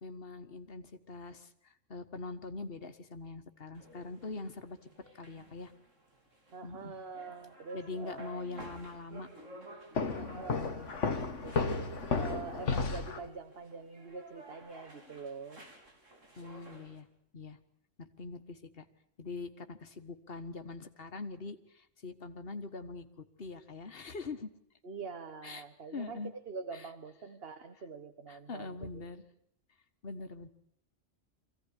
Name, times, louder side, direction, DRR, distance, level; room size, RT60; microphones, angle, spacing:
voice 1, 0.0-4.8 5.1-5.7 6.6-6.9 7.7-9.3 10.1-10.4 16.4-17.1 17.3-17.6 18.0-18.8 19.2-23.1 23.4-24.5 25.4-25.6 25.9-26.3 26.7-26.9 28.3-29.2 30.0-30.5, left 3 dB, 50° left, 8 dB, 1.7 m, -43 dB
sound 1, 3.7-17.0, right 1 dB, 80° right, 4.3 m, -54 dB
voice 2, 6.5-8.6 10.1-11.0 11.4-15.7 24.8-29.1, right 4 dB, 50° right, 8 dB, 1.5 m, -45 dB
Walk footsteps, 10.0-13.3, left 4 dB, 75° left, 1.7 m, -33 dB
24.5 x 16.5 x 9.9 m, 0.72 s
omnidirectional pair, 1.3 m